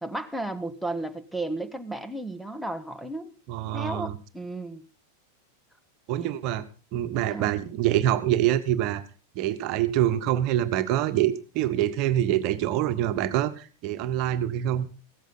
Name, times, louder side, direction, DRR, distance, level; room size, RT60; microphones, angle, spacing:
voice 1, 0.0-3.3 3.7-4.8 7.2-7.5, right 2 dB, ahead, 1.3 m, -33 dB
voice 2, 3.5-4.2 6.1-6.6 6.9-9.0 9.3-14.9, right 12 dB, 40° right, 1.4 m, -25 dB
16.5 x 14.0 x 4.1 m
figure-of-eight pair, 90°, 0 cm